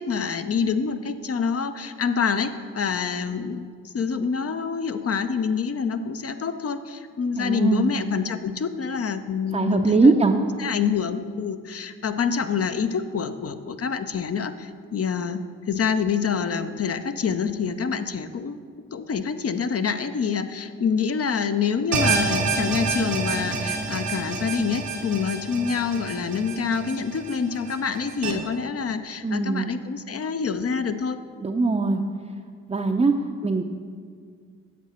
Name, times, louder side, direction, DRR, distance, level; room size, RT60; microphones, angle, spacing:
voice 1, 0.0-3.7 3.9-18.6 18.9-31.2 33.2-33.3, left 6 dB, 45° left, 9 dB, 0.7 m, -26 dB
voice 2, 7.4-7.9 9.5-10.4 29.2-29.7 31.4-32.0 32.7-33.1 33.4-33.6, right 3 dB, 20° right, 2 dB, 0.6 m, -21 dB
sound 1, 21.9-28.3, right 3 dB, 90° right, 1.3 m, -28 dB
10.5 x 7.2 x 4.3 m, 2.1 s
supercardioid pair, 45°, 34 cm